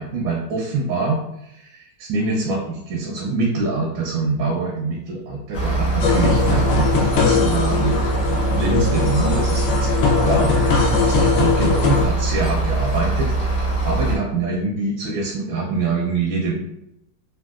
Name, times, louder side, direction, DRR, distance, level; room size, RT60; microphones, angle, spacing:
voice 1, 0.0-8.0 8.3-16.6, right 3 dB, 80° right, -2 dB, 1.3 m, -25 dB
sound 1, 5.5-14.2, right 2 dB, 50° left, 1.1 m, -22 dB
Awesome Didjeridoo Busker, 6.0-12.1, left 5 dB, 85° left, 1.4 m, -21 dB
3.7 x 2.3 x 2.4 m, 0.82 s
omnidirectional pair, 2.0 m